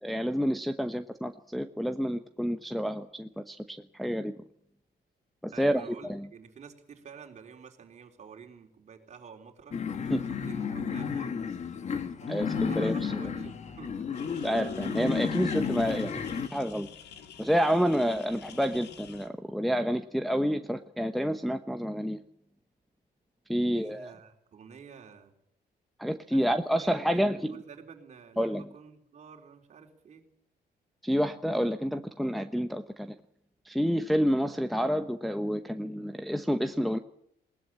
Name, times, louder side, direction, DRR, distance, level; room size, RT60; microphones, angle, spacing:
voice 1, 0.0-4.3 5.4-6.3 10.1-10.3 12.3-13.1 14.4-16.2 16.5-16.9 17.4-22.2 23.5-24.1 26.0-27.5 28.4-28.6 31.0-33.1 33.7-37.0, equal, ahead, 6 dB, 0.9 m, -29 dB
voice 2, 5.5-9.8 10.2-11.6 12.2-12.3 12.7-13.9 23.6-25.3 26.3-30.2, right 6 dB, 40° right, 4 dB, 3.8 m, -49 dB
sound 1, 9.7-16.5, left 6 dB, 40° left, 1.8 m, -32 dB
sound 2, 14.1-19.3, left 8 dB, 75° left, 2.4 m, -50 dB
20.5 x 19.0 x 8.7 m, 0.71 s
cardioid pair, 140°, 17 cm